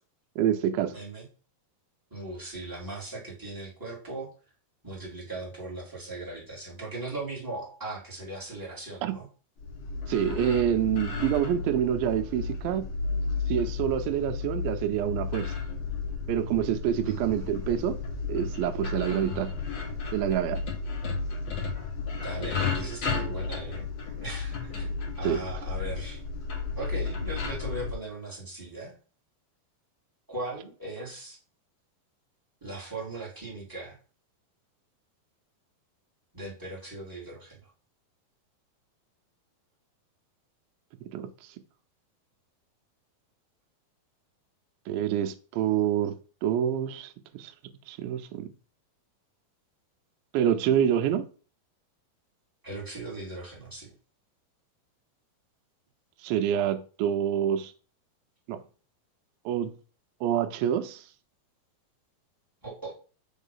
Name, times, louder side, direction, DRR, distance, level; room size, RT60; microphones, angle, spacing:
voice 1, 0.4-1.0 9.0-9.2 10.1-12.9 13.5-15.5 16.3-18.0 18.3-19.5 20.1-20.6 25.2-25.4 41.1-41.3 44.9-46.1 46.4-47.5 47.9-48.5 50.3-51.3 56.2-57.7 58.5-58.6 59.5-59.7 60.2-61.0, right 10 dB, 85° right, 2.4 m, -27 dB
voice 2, 0.9-1.2 2.1-4.3 4.8-9.3 17.0-17.5 22.2-23.9 24.2-24.8 25.2-26.2 26.8-28.9 30.3-31.4 32.6-34.0 36.3-37.6 52.6-53.9 62.6-62.9, right 2 dB, 5° right, 2.3 m, -38 dB
sound 1, 9.6-27.9, left 4 dB, 90° left, 1.0 m, -33 dB
5.4 x 4.1 x 5.5 m
omnidirectional pair, 4.2 m